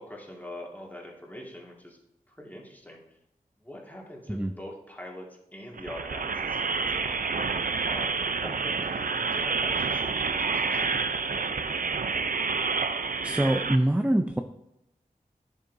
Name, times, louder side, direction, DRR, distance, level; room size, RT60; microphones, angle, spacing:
voice 1, 0.0-2.0 2.3-3.0 3.6-7.6 7.9-11.4, left 1 dB, 10° left, -2 dB, 2.0 m, -44 dB
sound 1, 5.8-13.8, right 5 dB, 65° right, 0.5 m, -28 dB
voice 2, 13.2-14.4, right 1 dB, 10° right, 5 dB, 0.5 m, -24 dB
10.5 x 7.5 x 2.7 m, 0.83 s
wide cardioid pair, 60°, 15 cm